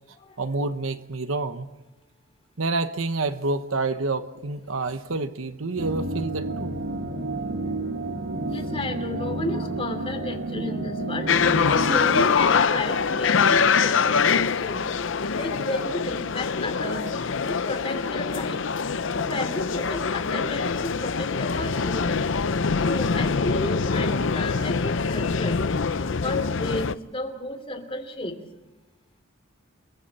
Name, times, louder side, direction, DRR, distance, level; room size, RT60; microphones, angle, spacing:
voice 1, 0.4-1.7 2.6-6.8, right 3 dB, 75° right, 10 dB, 1.1 m, -28 dB
sound 1, 5.8-12.3, right 2 dB, 60° right, 1.7 m, -30 dB
voice 2, 8.5-14.9 15.3-17.0 17.4-18.6 19.1-22.2 22.8-25.7 26.0-28.4, left 1 dB, 25° left, 6 dB, 3.1 m, -33 dB
sound 2, 11.3-26.9, left 5 dB, 65° left, 0.6 m, -24 dB
29.5 x 23.0 x 4.3 m, 1.0 s
head